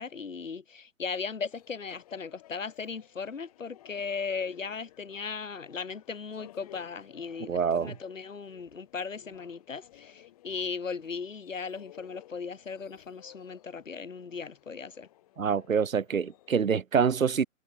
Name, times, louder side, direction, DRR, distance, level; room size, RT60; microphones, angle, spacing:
voice 1, 0.0-15.1, left 5 dB, 70° left, 1.4 m, -37 dB
sound 1, 1.5-16.7, left 14 dB, 30° left, 4.4 m, -57 dB
voice 2, 7.5-7.9 15.4-17.4, right 6 dB, 75° right, 0.8 m, -26 dB
figure-of-eight pair, 145°, 40 cm